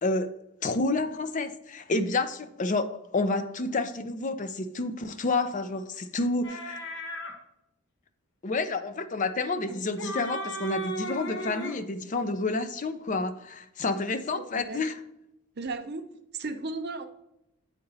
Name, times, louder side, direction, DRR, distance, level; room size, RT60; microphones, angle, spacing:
voice 1, 0.6-6.8 8.4-15.0, left 3 dB, 35° left, 0.4 m, -29 dB
sound 1, 6.4-7.4 9.7-11.8, equal, 55° left, 0.9 m, -35 dB
voice 2, 14.3-14.9 15.6-16.1 16.3-17.1, right 3 dB, 50° right, 0.7 m, -35 dB
8.1 x 3.9 x 4.0 m
head